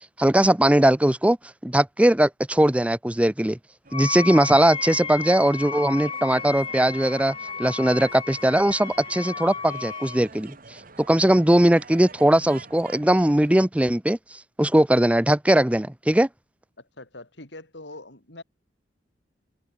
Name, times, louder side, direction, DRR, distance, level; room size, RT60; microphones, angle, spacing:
voice 1, 0.2-1.4 1.6-3.6 3.9-10.5 11.0-16.3, right 1 dB, 5° right, 0.6 m, -20 dB
Wind instrument woodwind instrument, 3.9-10.2, left 6 dB, 30° left, 1.6 m, -34 dB
sound 1, 3.9-13.7, right 4 dB, 50° right, 2.3 m, -46 dB
voice 2, 16.8-18.4, left 2 dB, 75° left, 5.1 m, -43 dB
head